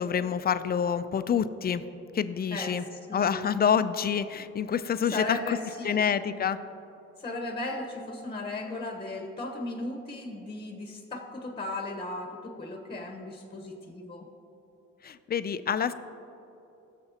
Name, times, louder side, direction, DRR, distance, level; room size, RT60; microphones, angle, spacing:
voice 1, 0.0-1.8 2.1-2.8 3.1-5.6 5.8-6.6 15.0-15.9, left 7 dB, 30° left, 13 dB, 0.4 m, -27 dB
voice 2, 3.1-3.4 5.1-6.0 7.2-14.3, left 2 dB, 15° left, 4 dB, 1.0 m, -36 dB
16.5 x 6.7 x 2.8 m, 2.9 s
cardioid pair, 90°, 30 cm